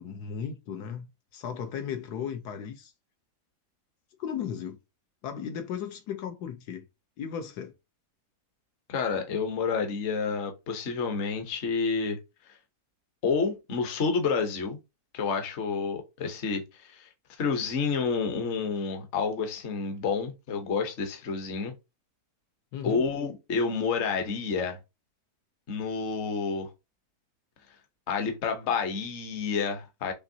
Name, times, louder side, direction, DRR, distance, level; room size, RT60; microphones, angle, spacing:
voice 1, 0.0-2.9 4.2-4.8 5.2-6.8 7.2-7.7 22.7-23.0, left 8 dB, 75° left, 1.3 m, -36 dB
voice 2, 8.9-12.2 13.2-14.8 15.1-17.1 17.4-21.7 22.8-24.8 25.7-26.7 28.1-30.1, left 5 dB, 50° left, 1.1 m, -29 dB
6.1 x 3.0 x 2.7 m
omnidirectional pair, 1.8 m